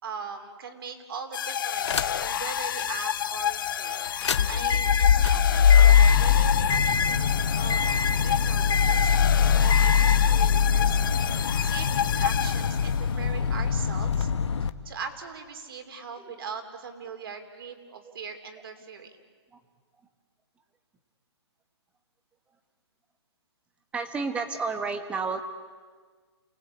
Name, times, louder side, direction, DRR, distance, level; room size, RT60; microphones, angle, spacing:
voice 1, 0.0-3.9 4.5-9.3 9.6-14.3 14.6-19.2, right 5 dB, 50° right, 6 dB, 3.5 m, -40 dB
sound 1, 1.3-13.1, left 9 dB, 45° left, 0.7 m, -30 dB
sound 2, 1.8-2.4 2.8-2.9 4.0-14.7, left 7 dB, 75° left, 1.3 m, -22 dB
voice 2, 23.9-25.4, right 4 dB, 10° right, 8 dB, 1.3 m, -31 dB
29.5 x 20.0 x 8.6 m, 1.6 s
hypercardioid pair, 160°, 15 cm